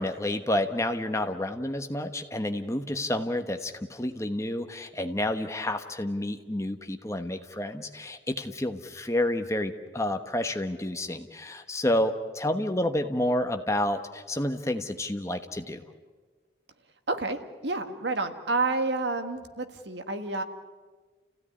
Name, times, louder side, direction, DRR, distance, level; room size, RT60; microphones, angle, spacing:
voice 1, 0.0-15.8, left 1 dB, 15° left, 7 dB, 1.2 m, -29 dB
voice 2, 17.1-20.4, right 3 dB, 75° right, 7 dB, 1.8 m, -29 dB
30.0 x 16.5 x 9.8 m, 1.4 s
head